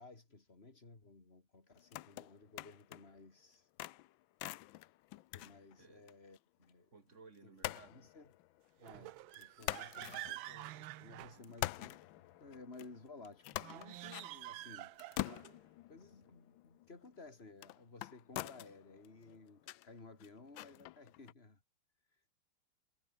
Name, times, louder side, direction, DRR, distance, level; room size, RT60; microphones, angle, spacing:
voice 1, 0.0-3.7 5.3-6.9 7.4-8.3 8.8-12.0 12.4-14.9 15.9-21.6 22.1-22.2, left 3 dB, 25° left, 3.4 m, -56 dB
sound 1, 1.7-3.2 3.5-6.4 6.6-6.7 7.6-9.0 9.3-11.0 11.4-21.3, left 16 dB, 75° left, 1.3 m, -46 dB
voice 2, 6.9-8.0, right 4 dB, 30° right, 3.3 m, -59 dB
sound 2, 8.8-11.9 13.5-15.5, right 16 dB, 75° right, 1.3 m, -48 dB
omnidirectional pair, 2.4 m